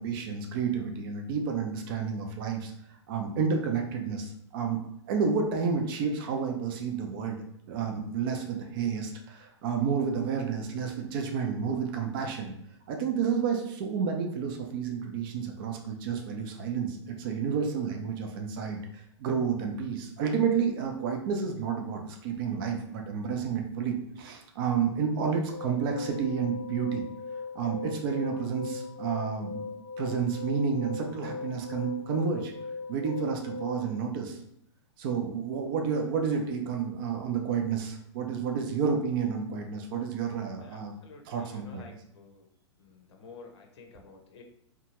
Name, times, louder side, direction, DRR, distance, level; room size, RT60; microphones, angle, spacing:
voice 1, 0.0-2.7 3.1-4.8 5.1-12.5 12.9-27.0 27.5-29.6 30.0-32.5 32.9-34.4 35.0-41.0 41.3-41.8, right 6 dB, 50° right, 2 dB, 0.5 m, -30 dB
sound 1, 25.5-33.9, left 4 dB, 85° right, 1.1 m, -39 dB
voice 2, 40.6-42.5 42.8-44.4, left 4 dB, 65° left, 3 dB, 0.6 m, -51 dB
2.8 x 2.3 x 2.9 m, 0.75 s
hypercardioid pair, 115°, 15 cm